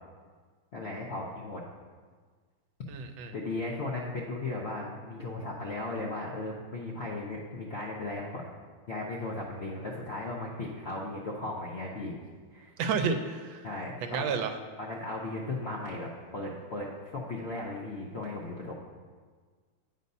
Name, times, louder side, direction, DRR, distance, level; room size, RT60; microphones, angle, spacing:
voice 1, 0.7-1.6 3.3-8.4 8.9-12.1 12.5-12.7 13.6-14.3 14.8-18.7, left 2 dB, 60° left, -3 dB, 0.6 m, -36 dB
voice 2, 2.9-3.3 12.8-13.7 14.0-14.5, right 5 dB, 80° right, 7 dB, 1.4 m, -31 dB
9.4 x 4.0 x 5.3 m, 1.5 s
omnidirectional pair, 2.2 m